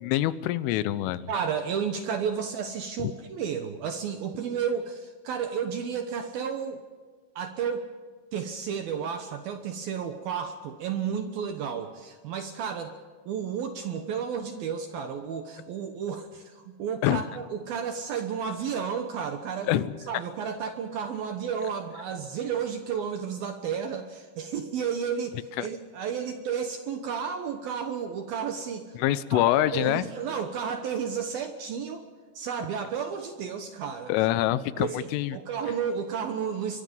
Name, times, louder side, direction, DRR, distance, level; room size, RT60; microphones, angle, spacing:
voice 1, 0.0-1.3 17.0-17.2 19.6-19.9 25.6-25.7 29.0-30.1 34.1-35.4, left 14 dB, 85° left, 16 dB, 3.4 m, -25 dB
voice 2, 1.3-6.8 7.4-7.9 8.3-12.9 13.3-32.0 32.3-34.1 34.8-36.8, right 7 dB, 70° right, 7 dB, 2.4 m, -32 dB
24.5 x 23.0 x 5.4 m, 1.5 s
omnidirectional pair, 5.7 m